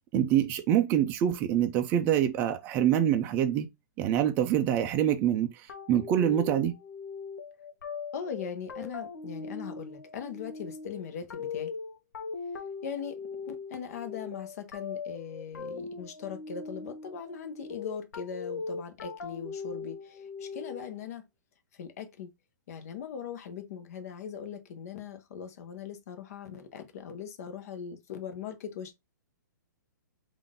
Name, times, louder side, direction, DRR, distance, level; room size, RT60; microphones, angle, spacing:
voice 1, 0.1-3.7 4.0-5.5 5.9-6.7, right 10 dB, 20° right, 0.4 m, -25 dB
sound 1, 5.7-21.0, left 5 dB, 90° left, 0.8 m, -40 dB
voice 2, 8.1-11.7 12.8-21.3 21.7-22.3 22.7-28.9, left 7 dB, 50° left, 0.9 m, -40 dB
3.7 x 2.5 x 3.6 m
hypercardioid pair, 160°, 10 cm